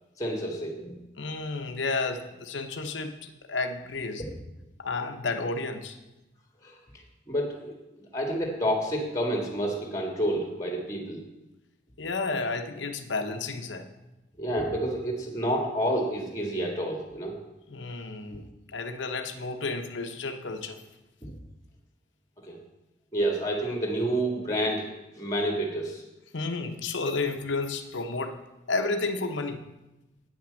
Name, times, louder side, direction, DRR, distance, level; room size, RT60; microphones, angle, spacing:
voice 1, 0.2-0.9 4.2-4.3 6.6-6.7 7.3-7.7 8.1-11.2 14.4-17.3 21.2-21.3 22.5-22.6 23.1-24.9 25.2-26.0, right 1 dB, 15° left, 1 dB, 1.8 m, -29 dB
voice 2, 1.2-4.2 4.8-6.0 12.0-13.9 17.7-20.8 26.3-28.4 28.7-29.6, left 3 dB, 80° left, 7 dB, 0.9 m, -31 dB
9.1 x 6.0 x 7.5 m, 0.97 s
head